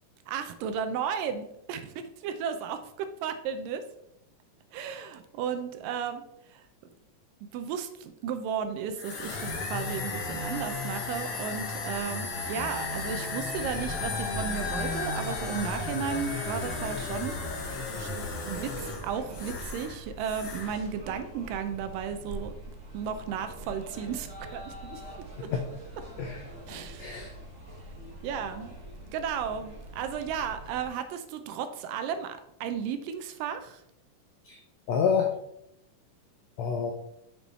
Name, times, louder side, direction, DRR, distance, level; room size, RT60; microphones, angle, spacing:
voice 1, 0.3-2.8 3.2-3.8 4.7-6.2 6.5-6.6 7.5-17.4 18.0-18.1 18.5-22.5 22.9-25.0 26.7-27.1 28.2-28.7 29.1-33.8, right 7 dB, 85° right, 9 dB, 2.3 m, -34 dB
sound 1, 8.9-19.9 20.2-20.7, left 4 dB, 60° left, 1.8 m, -34 dB
sound 2, 13.6-30.9, right 1 dB, 35° right, 1.2 m, -43 dB
voice 2, 27.0-27.3 34.4-34.6 34.9-35.4 36.6-36.9, left 6 dB, 85° left, 2 dB, 1.5 m, -28 dB
7.0 x 4.4 x 4.2 m, 0.76 s
omnidirectional pair, 3.8 m